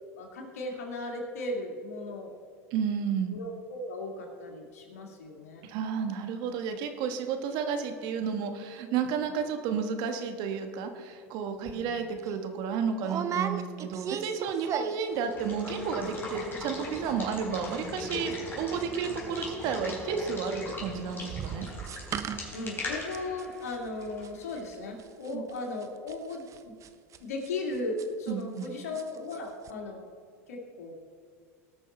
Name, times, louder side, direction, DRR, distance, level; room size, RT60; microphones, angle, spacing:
voice 1, 0.2-2.3 3.3-5.7 11.6-12.0 22.5-26.8 27.2-30.0 30.5-30.9, left 2 dB, 85° left, 1 dB, 2.3 m, -37 dB
voice 2, 2.7-3.3 5.6-21.7 25.3-25.4 28.3-28.7, right 6 dB, 65° right, 6 dB, 1.4 m, -32 dB
sound 1, 11.7-11.8 12.2-12.4 13.0-15.2 15.4-15.9 16.1-16.2 16.4-16.8 17.0-19.4 19.6-28.7 28.9-29.4 29.6-29.7, right 8 dB, 40° right, 0.8 m, -38 dB
Water / Water tap faucet / Liquid, 15.1-24.8, left 2 dB, 25° left, 3.4 m, -40 dB
18.5 x 6.3 x 4.4 m, 2.1 s
hypercardioid pair, 95°, 8 cm